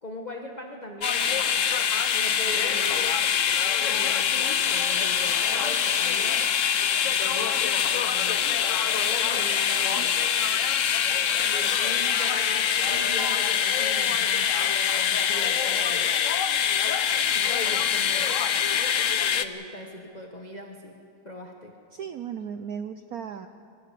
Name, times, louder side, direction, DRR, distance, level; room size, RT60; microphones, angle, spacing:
voice 1, 0.0-1.6 2.1-3.2 3.8-6.5 7.0-8.6 8.9-10.2 11.4-14.6 14.9-16.2 17.3-18.4 19.3-21.0 21.2-21.8, left 1 dB, 25° left, 2 dB, 1.2 m, -40 dB
sound 1, 1.0-19.5, left 8 dB, 55° left, 0.9 m, -24 dB
voice 2, 21.9-23.5, right 7 dB, 65° right, 8 dB, 1.0 m, -36 dB
24.5 x 16.5 x 8.5 m, 2.4 s
omnidirectional pair, 2.2 m